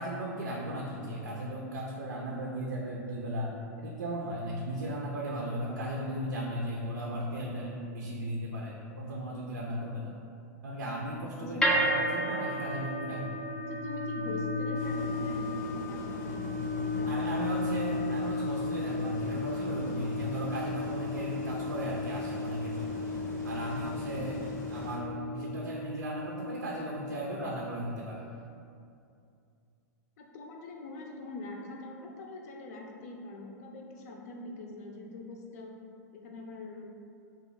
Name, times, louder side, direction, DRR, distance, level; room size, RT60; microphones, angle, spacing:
voice 1, 0.0-10.1 10.6-13.3 17.0-23.1 23.4-24.4 24.7-28.2, right 1 dB, 85° right, -2 dB, 0.4 m, -36 dB
voice 2, 11.4-12.1 13.6-17.4 30.2-35.8 36.1-36.8, left 2 dB, 60° left, 1 dB, 0.5 m, -43 dB
sound 1, 11.6-27.8, left 2 dB, 10° left, 0.4 m, -34 dB
sound 2, 14.7-25.0, left 2 dB, 85° left, 1.0 m, -44 dB
2.8 x 2.4 x 3.9 m, 2.5 s
hypercardioid pair, 100°, 10 cm